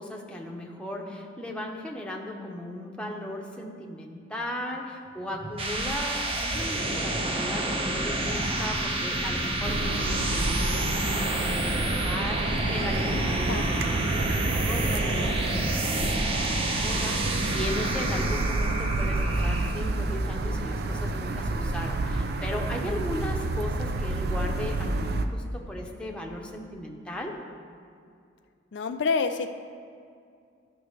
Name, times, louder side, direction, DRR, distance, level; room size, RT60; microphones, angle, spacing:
voice 1, 0.0-27.4, left 1 dB, 5° left, -1 dB, 0.8 m, -37 dB
sound 1, 5.3-19.8, right 1 dB, 30° right, 0.8 m, -29 dB
sound 2, 9.6-25.3, right 2 dB, 60° right, 0.5 m, -29 dB
voice 2, 13.1-13.6 28.7-29.6, left 4 dB, 70° left, 7 dB, 0.4 m, -28 dB
13.0 x 6.0 x 3.2 m, 2.3 s
head